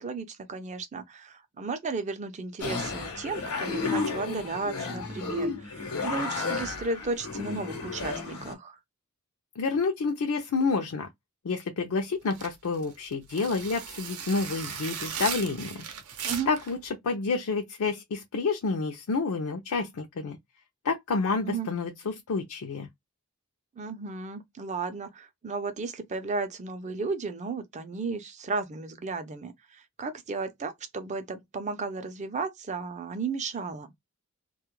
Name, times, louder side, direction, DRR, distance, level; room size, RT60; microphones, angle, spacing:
voice 1, 0.0-8.8 16.2-16.5 21.4-21.7 23.8-33.9, right 4 dB, 35° right, 0.5 m, -34 dB
sound 1, 2.6-8.5, left 4 dB, 90° left, 0.9 m, -32 dB
voice 2, 9.6-11.1 11.4-15.8 16.5-20.4 20.8-22.9, left 4 dB, 65° left, 0.4 m, -29 dB
sound 2, 12.3-16.7, right 7 dB, 80° right, 0.7 m, -37 dB
2.2 x 2.1 x 3.0 m
head